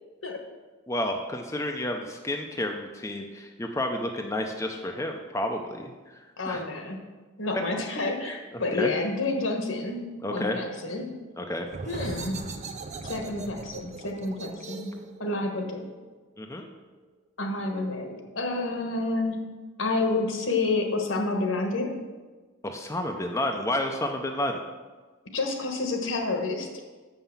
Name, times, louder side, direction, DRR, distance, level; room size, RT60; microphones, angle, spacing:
voice 1, 0.9-5.9 6.5-6.6 8.8-8.9 10.2-10.6 11.4-11.7 16.4-16.7 22.6-24.6, left 1 dB, 15° left, 3 dB, 0.5 m, -30 dB
voice 2, 6.4-7.0 7.4-10.0 10.3-11.1 11.8-12.4 13.0-14.9 15.2-15.9 17.4-19.4 19.8-21.9 25.3-26.8, left 2 dB, 75° left, 3 dB, 1.4 m, -29 dB
sound 1, 11.7-17.1, right 3 dB, 35° right, 0.6 m, -40 dB
6.9 x 5.6 x 7.0 m, 1.3 s
head